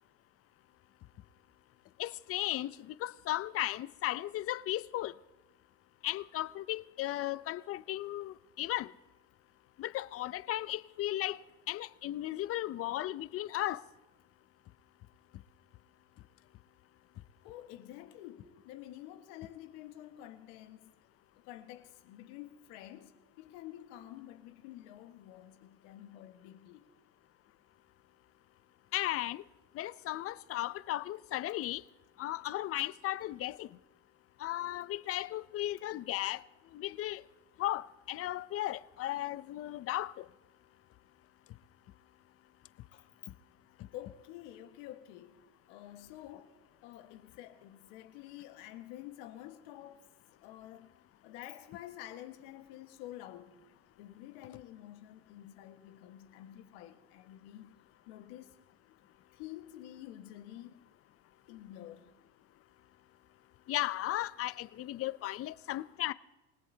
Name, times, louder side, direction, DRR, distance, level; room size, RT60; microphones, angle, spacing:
voice 1, 2.0-5.1 6.0-8.9 9.8-11.4 11.7-13.8 28.9-29.4 29.8-31.8 32.2-33.7 34.4-36.4 36.7-37.2 37.6-40.2 63.7-66.1, left 15 dB, 40° left, 0.6 m, -35 dB
voice 2, 17.4-20.9 21.4-26.9 42.9-43.1 43.9-45.4 45.7-46.5 46.8-50.0 50.3-50.9 51.2-53.6 54.0-57.8 58.1-58.5 59.3-60.8 61.5-62.0, left 13 dB, 75° left, 1.6 m, -49 dB
28.0 x 17.5 x 2.8 m
supercardioid pair, 100°, 36 cm